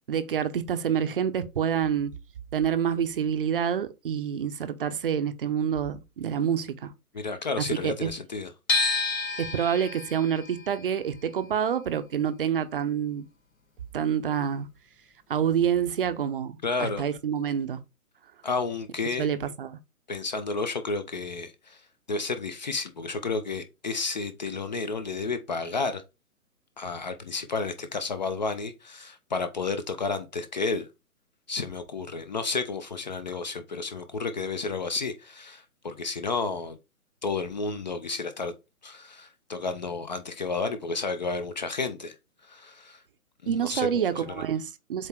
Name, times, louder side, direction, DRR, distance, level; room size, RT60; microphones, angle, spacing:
voice 1, 0.1-2.1 2.5-6.9 7.6-8.1 9.4-13.2 13.9-14.7 15.3-17.8 19.2-19.8 43.5-45.1, right 8 dB, 40° right, 0.7 m, -27 dB
voice 2, 7.1-8.5 16.6-17.0 18.4-19.3 20.1-21.8 22.1-26.0 26.8-30.9 31.5-36.8 37.2-38.5 38.8-42.2 42.4-43.0 43.4-44.4, left 4 dB, 30° left, 0.6 m, -31 dB
sound 1, 8.7-14.7 15.0-16.3, left 3 dB, 65° left, 2.1 m, -32 dB
7.6 x 2.9 x 4.4 m
figure-of-eight pair, 135°, 44 cm